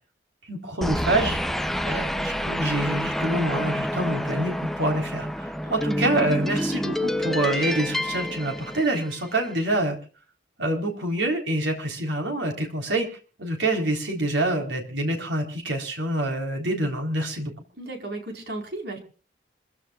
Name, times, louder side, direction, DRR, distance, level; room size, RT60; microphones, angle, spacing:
voice 1, 0.5-1.4 1.8-10.0 10.6-13.1 13.4-17.5, right 1 dB, 85° right, 2 dB, 4.1 m, -26 dB
sound 1, 0.8-9.4, equal, ahead, 0.7 m, -28 dB
voice 2, 17.8-19.0, right 2 dB, 65° right, 2 dB, 4.7 m, -35 dB
26.5 x 16.0 x 2.5 m, 0.36 s
head